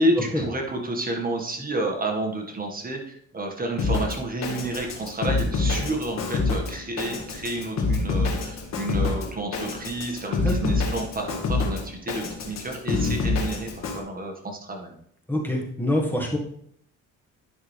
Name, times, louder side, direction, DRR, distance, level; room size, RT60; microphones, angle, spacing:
voice 1, 0.0-15.0, right 1 dB, 30° right, 1 dB, 1.8 m, -30 dB
Drum kit, 3.8-14.0, left 3 dB, 60° left, 1.9 m, -27 dB
voice 2, 15.3-16.4, left 1 dB, 5° left, -1 dB, 1.7 m, -25 dB
11.0 x 6.1 x 3.5 m, 0.66 s
cardioid pair, 90°, 30 cm